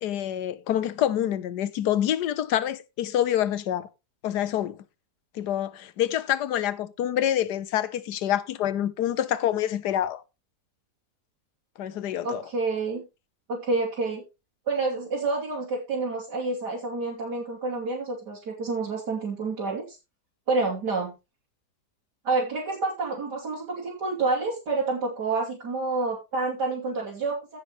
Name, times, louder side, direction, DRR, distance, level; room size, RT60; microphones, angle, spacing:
voice 1, 0.0-3.9 4.2-4.8 5.3-10.2 11.8-12.4, left 11 dB, 75° left, 1.4 m, -26 dB
voice 2, 12.2-13.0 13.5-14.2 14.7-20.0 20.5-21.1 22.2-27.6, right 3 dB, 80° right, 3.5 m, -28 dB
16.0 x 6.4 x 3.1 m
omnidirectional pair, 1.8 m